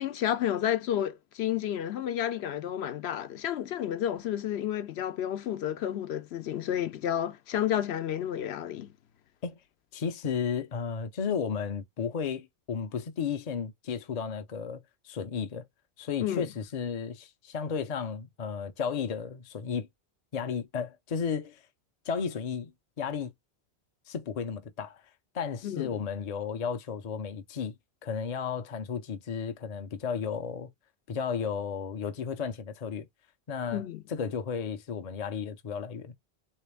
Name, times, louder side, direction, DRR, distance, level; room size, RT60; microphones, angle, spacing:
voice 1, 0.0-8.9 16.2-16.4 25.6-25.9 33.7-34.0, left 11 dB, 80° left, 0.9 m, -31 dB
voice 2, 9.9-14.8 15.0-15.6 16.0-19.9 20.3-21.6 22.1-22.7 23.0-23.3 24.1-25.0 25.3-27.7 28.0-30.7 31.1-33.1 33.5-33.8 34.1-36.1, left 6 dB, 45° left, 0.6 m, -33 dB
3.3 x 3.1 x 3.3 m
omnidirectional pair, 1.1 m